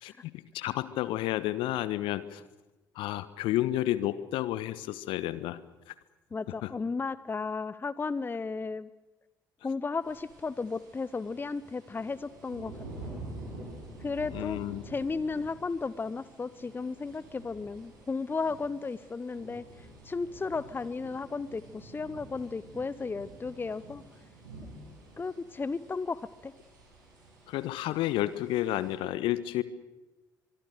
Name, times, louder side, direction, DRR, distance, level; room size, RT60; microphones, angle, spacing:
voice 1, 0.0-2.4 2.9-5.6 5.9-6.0 6.6-6.7 14.3-14.8 27.5-29.6, left 14 dB, 60° left, 16 dB, 1.2 m, -31 dB
voice 2, 6.3-8.9 9.6-12.7 13.1-13.2 14.0-14.6 14.9-24.0 25.2-26.5, left 4 dB, 20° left, 18 dB, 0.7 m, -34 dB
sound 1, 10.0-28.9, right 2 dB, 75° right, 7.9 m, -48 dB
24.5 x 23.0 x 6.7 m, 1.1 s
figure-of-eight pair, 50°, 10 cm